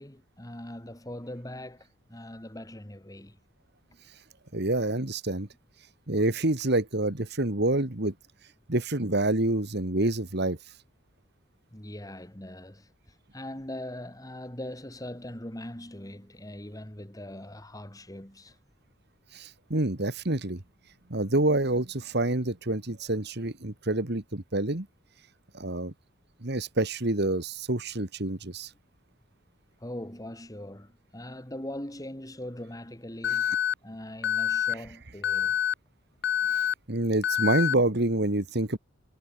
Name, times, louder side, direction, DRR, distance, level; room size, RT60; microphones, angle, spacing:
voice 1, 0.0-3.4 11.7-12.9 13.3-18.6 29.8-35.6, left 1 dB, 15° left, 2.5 m, -41 dB
voice 2, 4.5-5.5 6.1-8.1 8.7-10.6 19.3-20.6 21.1-24.9 25.5-25.9 26.4-28.7 36.5-38.8, right 2 dB, 55° right, 2.0 m, -27 dB
Alarm, 33.2-33.7 34.2-34.7 35.2-35.7 36.2-36.7 37.2-37.7, left 8 dB, 55° left, 1.0 m, -26 dB
head